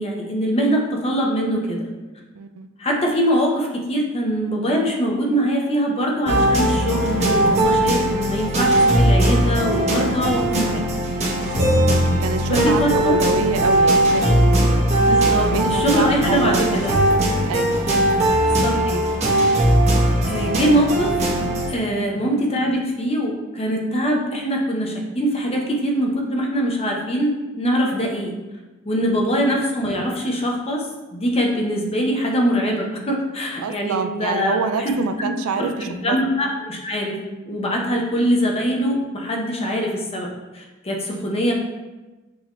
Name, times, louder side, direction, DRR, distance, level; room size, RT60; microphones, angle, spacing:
voice 1, 0.0-1.9 2.8-10.8 12.5-13.2 15.0-16.9 18.5-19.0 20.2-21.3 21.7-28.3 28.9-35.3 35.6-37.2 37.4-40.3 40.5-41.5, equal, 30° left, 0 dB, 0.7 m, -23 dB
voice 2, 2.3-2.7 11.4-16.8 17.5-18.6 21.9-22.0 29.0-29.2 33.6-36.2, right 5 dB, 80° right, 9 dB, 0.3 m, -27 dB
sound 1, 6.3-21.7, right 1 dB, 30° right, 1.0 m, -19 dB
6.2 x 2.8 x 3.0 m, 1.1 s
head